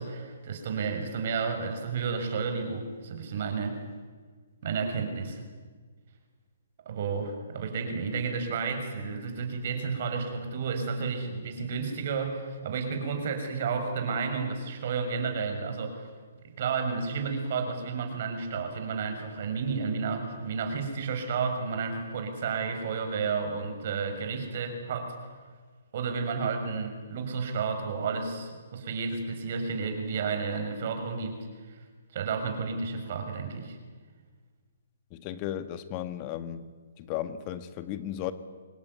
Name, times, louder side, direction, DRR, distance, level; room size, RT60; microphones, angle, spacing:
voice 1, 0.0-3.8 4.6-5.4 6.8-16.1 16.4-25.1 25.9-31.4 31.7-31.8 32.1-33.8, right 5 dB, 50° right, 6.2 m, -31 dB
voice 2, 35.1-36.6 37.0-38.3, left 11 dB, 30° left, 1.8 m, -35 dB
26.0 x 20.5 x 9.6 m
hypercardioid pair, 140°, 0 cm